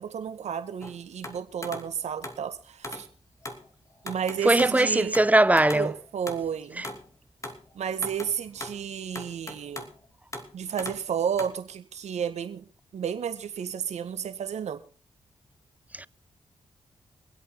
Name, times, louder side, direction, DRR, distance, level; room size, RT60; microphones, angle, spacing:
voice 1, 0.0-3.1 4.0-5.2 5.7-6.8 7.7-9.9 10.5-12.7 12.9-14.8, right 8 dB, 70° right, 1.6 m, -32 dB
sound 1, 0.8-2.5 2.8-3.1 3.4-3.7 4.1-4.8 5.1-7.1 7.4-7.7 8.0-8.8 9.2-10.0 10.3-10.5 10.8-11.1 11.4-11.5, left 1 dB, 25° left, 2.7 m, -39 dB
voice 2, 4.4-5.9 6.8-6.9 15.9-16.1, right 1 dB, 15° right, 0.5 m, -20 dB
25.0 x 8.3 x 3.8 m
supercardioid pair, 40°, 12 cm